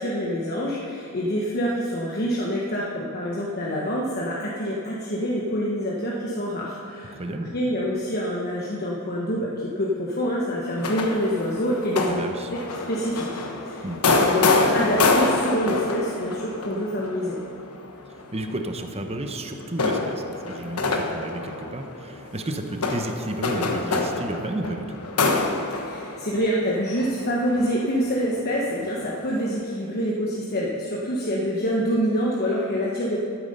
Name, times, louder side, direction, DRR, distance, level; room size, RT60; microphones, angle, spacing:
voice 1, 0.0-7.1 7.5-12.2 12.5-12.6 12.9-13.8 14.2-17.4 25.7-33.2, equal, 45° left, -4 dB, 1.2 m, -26 dB
voice 2, 7.1-7.5 12.1-12.5 13.8-14.0 18.3-25.0, right 1 dB, 30° right, 5 dB, 0.9 m, -32 dB
sound 1, 10.8-19.1 19.6-28.4 29.0-29.5, left 3 dB, 90° left, 1.2 m, -26 dB
12.5 x 9.3 x 5.5 m, 2.5 s
head